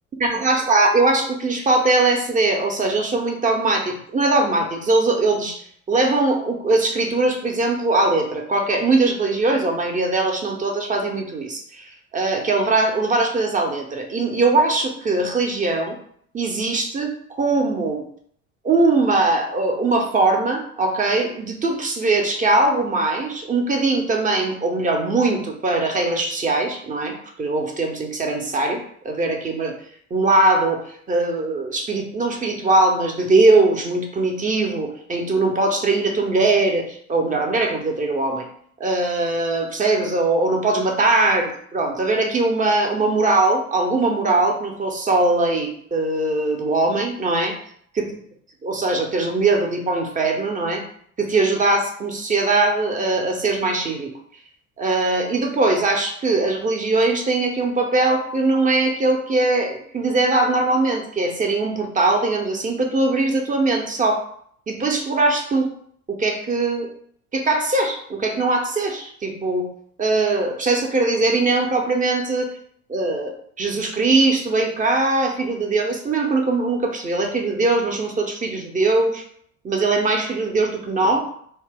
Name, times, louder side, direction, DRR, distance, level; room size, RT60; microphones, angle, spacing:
voice 1, 0.3-16.0 16.3-18.0 18.6-29.7 30.1-30.8 31.1-38.4 38.8-47.5 47.9-48.2 48.6-50.8 51.2-54.1 54.8-64.3 64.7-65.7 66.1-66.9 67.3-69.7 70.0-72.5 72.9-73.3 73.6-79.2 79.6-81.2, right 2 dB, 20° right, 3 dB, 0.6 m, -21 dB
2.8 x 2.1 x 3.4 m, 0.63 s
hypercardioid pair, 65°, 40 cm